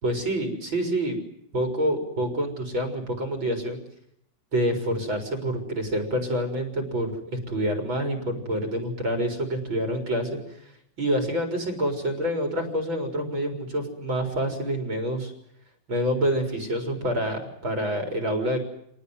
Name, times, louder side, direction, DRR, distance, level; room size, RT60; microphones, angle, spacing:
voice 1, 0.0-1.2 1.5-3.8 4.5-10.4 11.0-15.3 15.9-18.6, equal, 90° right, 4 dB, 5.3 m, -27 dB
27.0 x 18.5 x 9.8 m, 0.74 s
omnidirectional pair, 2.1 m